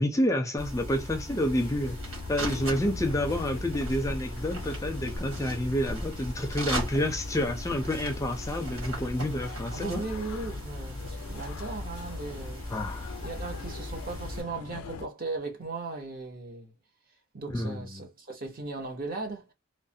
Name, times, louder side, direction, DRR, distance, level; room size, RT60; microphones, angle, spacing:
voice 1, 0.0-2.0 2.3-10.0 12.7-13.1 17.5-18.0, left 1 dB, 15° left, 0.4 m, -29 dB
sound 1, 0.6-14.4, equal, 85° right, 1.6 m, -37 dB
sound 2, 1.3-15.1, left 6 dB, 90° left, 0.4 m, -44 dB
voice 2, 9.7-12.6 13.2-16.7 17.3-19.5, right 3 dB, 45° right, 0.7 m, -37 dB
3.1 x 2.1 x 2.6 m
head